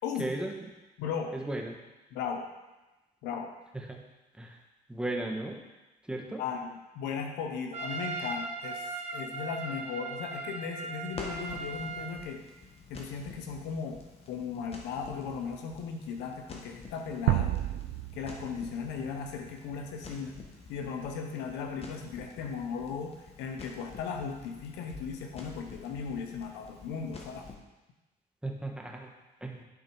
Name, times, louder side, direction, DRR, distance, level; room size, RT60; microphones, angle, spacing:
voice 1, 0.2-0.5 1.3-1.8 3.8-4.0 4.4-4.6 4.9-5.6 6.0-6.4 28.4-29.1 29.4-29.6, right 1 dB, 5° right, 1 dB, 1.1 m, -35 dB
voice 2, 1.0-1.3 2.1-2.5 3.2-3.5 6.4-8.9 9.1-12.4 12.9-14.0 14.3-17.5 18.2-20.4 20.7-27.5, left 6 dB, 90° left, 3 dB, 0.9 m, -37 dB
Trumpet, 7.7-12.2, right 3 dB, 40° right, 1.0 m, -38 dB
Crackle, 11.1-27.6, left 4 dB, 35° left, 1.2 m, -49 dB
sound 1, 17.3-20.2, right 14 dB, 85° right, 0.4 m, -32 dB
10.5 x 3.9 x 4.6 m, 1.1 s
cardioid pair, 110°, 17 cm